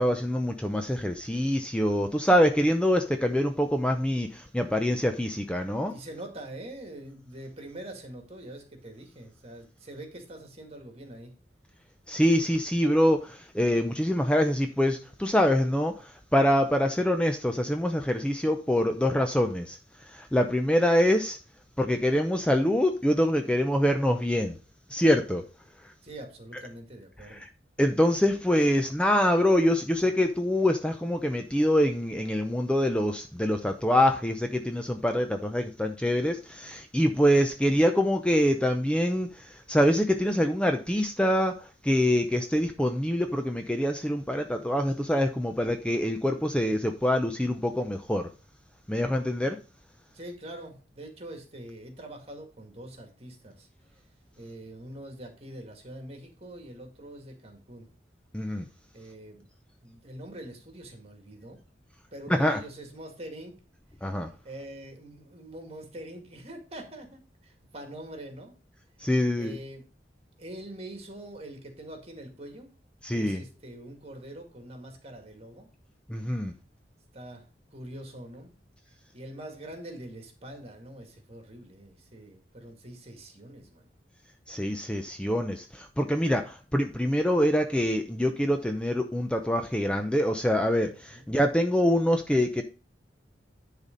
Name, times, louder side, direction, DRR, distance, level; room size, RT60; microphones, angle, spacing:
voice 1, 0.0-5.9 12.1-19.8 20.0-21.4 21.8-24.6 24.9-25.4 27.3-27.5 27.8-41.5 41.8-48.3 48.9-49.6 58.3-58.7 62.3-62.6 64.0-64.3 69.0-69.6 73.0-73.4 76.1-76.5 84.5-92.6, equal, 5° left, 5 dB, 0.6 m, -25 dB
voice 2, 5.9-11.3 26.0-27.5 50.1-53.7 54.4-57.9 58.9-59.5 59.8-61.6 62.1-63.6 64.4-68.5 69.4-69.9 70.4-72.7 73.1-75.7 77.1-77.5 77.7-78.5 79.1-83.9 91.1-91.3, right 1 dB, 35° right, 4 dB, 2.1 m, -44 dB
10.5 x 4.2 x 5.2 m, 0.35 s
head